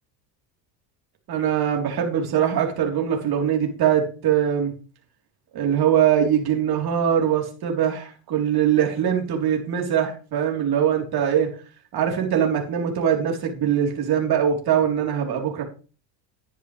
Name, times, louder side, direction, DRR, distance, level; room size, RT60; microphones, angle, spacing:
voice 1, 1.3-4.7 5.5-11.5 11.9-15.6, right 9 dB, 50° right, 1 dB, 3.7 m, -22 dB
12.0 x 10.0 x 3.3 m, 0.36 s
supercardioid pair, 100°, 49 cm